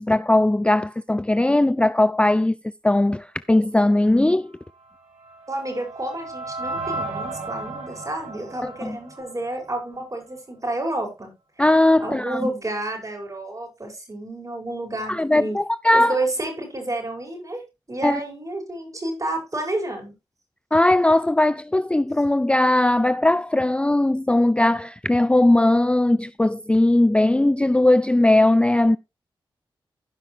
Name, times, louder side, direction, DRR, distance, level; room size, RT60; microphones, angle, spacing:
voice 1, 0.0-2.6 2.8-4.5 8.8-9.0 11.6-12.5 15.1-16.2 18.0-18.2 20.7-29.0, left 1 dB, 10° left, 0.4 m, -19 dB
sound 1, 4.8-10.0, right 2 dB, 85° right, 2.7 m, -34 dB
voice 2, 5.5-11.3 12.0-15.6 15.9-17.6 17.9-20.1, right 2 dB, 35° right, 5.5 m, -30 dB
16.0 x 5.6 x 3.1 m
cardioid pair, 50°, 10 cm